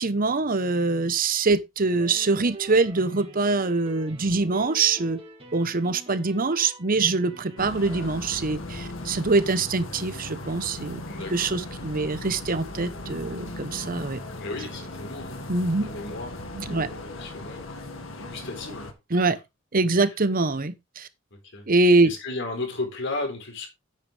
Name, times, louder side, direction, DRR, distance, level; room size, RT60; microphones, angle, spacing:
voice 1, 0.0-5.2 5.5-11.0 11.3-14.2 15.5-15.9 16.6-16.9 19.1-19.4 19.7-21.1 21.7-22.1, right 3 dB, 45° right, 1.0 m, -24 dB
sound 1, 2.0-8.1, right 2 dB, 30° right, 2.7 m, -45 dB
sound 2, 7.6-18.9, left 2 dB, 90° left, 1.9 m, -38 dB
voice 2, 11.1-11.5 14.4-15.4 15.8-17.8 18.2-19.4 19.9-20.1 21.3-21.7 22.0-23.7, left 2 dB, 65° left, 4.0 m, -35 dB
9.8 x 8.5 x 3.4 m
head